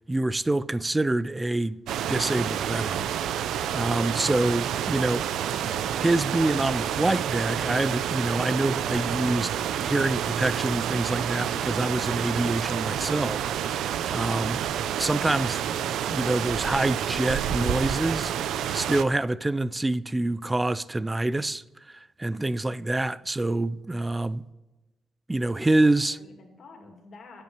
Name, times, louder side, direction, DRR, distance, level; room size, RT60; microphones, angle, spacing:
voice 1, 0.0-1.8 2.1-3.1 3.7-5.2 6.0-9.5 9.8-13.4 13.7-14.6 15.0-15.6 16.1-24.4 25.3-26.2, right 2 dB, 15° right, 0.4 m, -26 dB
sound 1, 1.9-19.0, right 9 dB, 75° right, 0.5 m, -29 dB
voice 2, 18.3-18.9 25.4-27.4, left 3 dB, 45° left, 2.6 m, -50 dB
8.9 x 7.7 x 8.9 m
cardioid pair, 120°, 0 cm